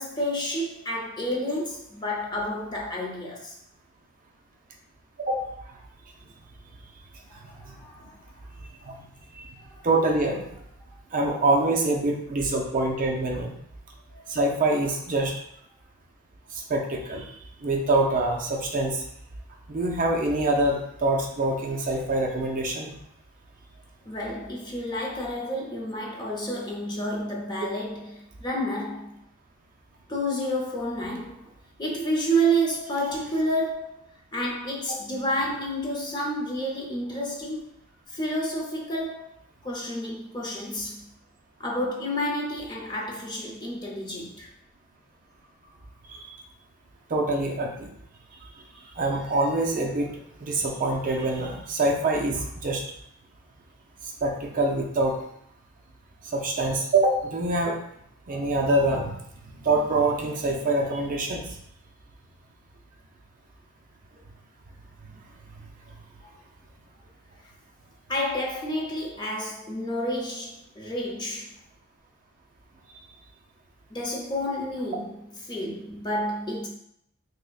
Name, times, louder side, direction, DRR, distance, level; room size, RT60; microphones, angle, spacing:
voice 1, 0.0-3.6 7.3-8.3 9.7-9.9 14.1-14.3 24.1-29.2 30.1-31.4 31.8-34.0 34.3-37.6 38.1-39.3 39.6-41.0 41.6-44.5 68.1-71.5 73.9-76.7, equal, 20° left, 0.6 m, -30 dB
voice 2, 9.8-10.5 11.1-13.5 14.3-15.3 16.5-17.3 17.6-19.0 19.7-22.9 46.1-46.4 47.1-47.9 49.0-50.1 50.4-52.8 54.2-55.2 56.3-57.8 58.3-59.2 59.6-61.5, right 2 dB, 35° right, 0.5 m, -25 dB
6.3 x 2.1 x 2.3 m
head